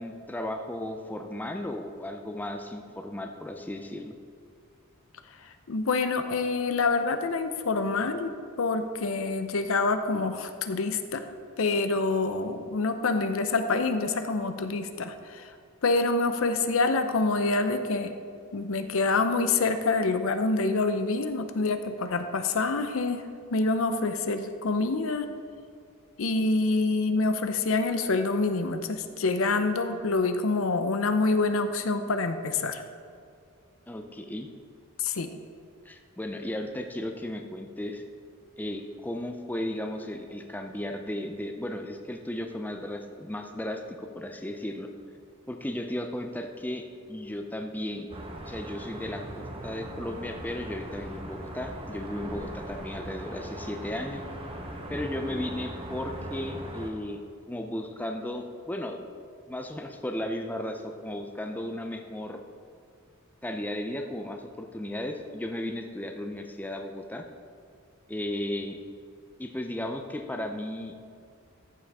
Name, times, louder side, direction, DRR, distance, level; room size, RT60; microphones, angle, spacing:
voice 1, 0.0-4.1 33.9-34.5 35.9-38.0 38.6-44.9 45.5-48.1 48.4-54.3 54.9-57.2 57.5-59.0 59.5-62.4 63.4-67.3 68.1-68.8 69.4-70.9, left 1 dB, 10° left, 4 dB, 0.4 m, -35 dB
voice 2, 5.7-8.3 8.6-15.5 15.8-18.1 18.5-23.2 23.5-25.3 26.2-32.8 35.0-35.3, left 3 dB, 65° left, 9 dB, 0.6 m, -26 dB
sound 1, 48.1-56.9, right 1 dB, 25° right, 0.9 m, -39 dB
13.5 x 7.3 x 3.5 m, 2.2 s
head